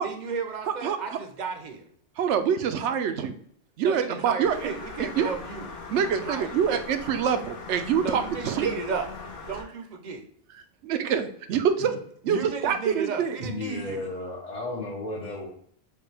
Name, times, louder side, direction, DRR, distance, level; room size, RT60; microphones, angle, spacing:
voice 1, 0.0-1.9 3.8-5.7 6.0-6.9 8.0-9.1 9.3-10.2 11.8-12.0 12.2-14.0, right 5 dB, 45° right, 4 dB, 0.7 m, -34 dB
voice 2, 2.2-3.3 3.8-4.6 5.2-5.3 5.9-8.7 10.8-11.9 12.2-13.4, right 7 dB, 80° right, 9 dB, 0.9 m, -25 dB
sound 1, 4.4-9.6, left 4 dB, 85° left, 1.2 m, -40 dB
voice 3, 13.4-15.5, left 2 dB, 40° left, -4 dB, 0.8 m, -33 dB
6.6 x 2.3 x 3.3 m, 0.63 s
omnidirectional pair, 1.2 m